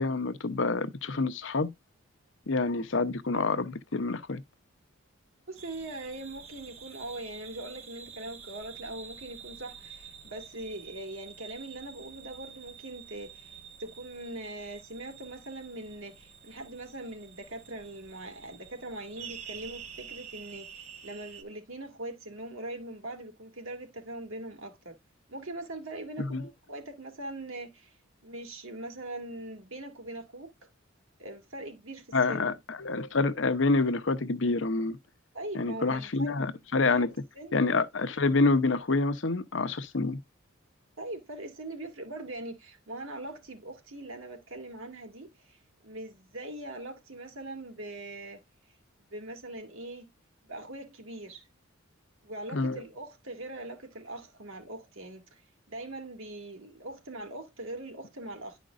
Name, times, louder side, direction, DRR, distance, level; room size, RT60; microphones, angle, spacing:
voice 1, 0.0-1.7 2.5-4.4 26.2-26.4 32.1-35.0 35.5-37.1 37.5-40.2 52.5-52.8, left 3 dB, 60° left, 0.8 m, -27 dB
voice 2, 5.5-25.0 25.3-27.9 28.2-30.5 31.2-32.4 35.3-36.4 36.9-37.1 37.4-37.6 41.0-48.4 49.1-50.1 50.4-51.5 52.2-55.2 55.7-58.6, right 2 dB, 70° right, 2.3 m, -41 dB
sound 1, 5.6-21.4, right 7 dB, 30° right, 1.3 m, -48 dB
11.0 x 5.2 x 2.5 m
head